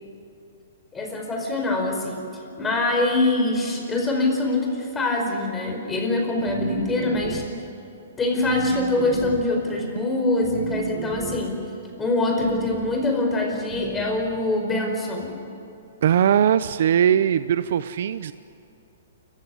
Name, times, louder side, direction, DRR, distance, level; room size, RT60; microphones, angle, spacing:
voice 1, 0.9-2.2 2.6-7.4 8.2-11.6 12.0-15.3, left 2 dB, 10° left, 1 dB, 4.8 m, -24 dB
sound 1, 6.5-7.6 8.4-9.5 10.4-11.5 12.4-13.0 13.7-14.3, right 5 dB, 40° right, 5.9 m, -32 dB
voice 2, 16.0-18.3, right 9 dB, 60° right, 13 dB, 0.7 m, -20 dB
29.5 x 15.0 x 9.6 m, 2.8 s
hypercardioid pair, 155°, 0 cm